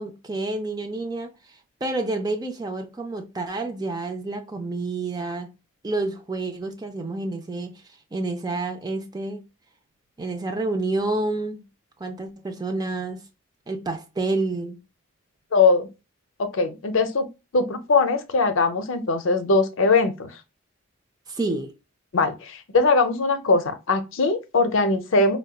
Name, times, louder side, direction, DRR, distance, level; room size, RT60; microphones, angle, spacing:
voice 1, 0.0-5.5 5.8-7.8 8.1-9.4 10.2-11.6 12.0-13.2 13.7-14.8 21.3-21.7, right 2 dB, 20° right, 0.4 m, -29 dB
voice 2, 15.5-15.9 16.4-17.3 17.5-20.3 22.1-25.4, left 3 dB, 75° left, 0.6 m, -21 dB
4.0 x 2.2 x 2.3 m
head